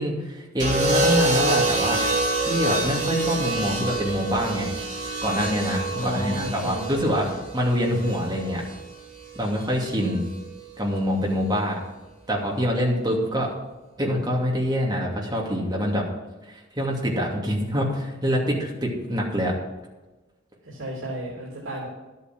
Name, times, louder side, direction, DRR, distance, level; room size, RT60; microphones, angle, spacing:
voice 1, 0.0-2.0 2.5-4.7 5.2-7.3 7.5-8.6 9.3-10.2 10.8-11.8 12.3-13.5 14.0-16.0 16.5-19.5, equal, 20° right, -2 dB, 2.7 m, -25 dB
sound 1, 0.6-8.8 10.0-10.4, right 2 dB, 40° right, 3.1 m, -26 dB
voice 2, 5.9-7.1 20.6-21.9, equal, 85° right, -5 dB, 3.2 m, -32 dB
12.0 x 8.6 x 6.1 m, 1.1 s
head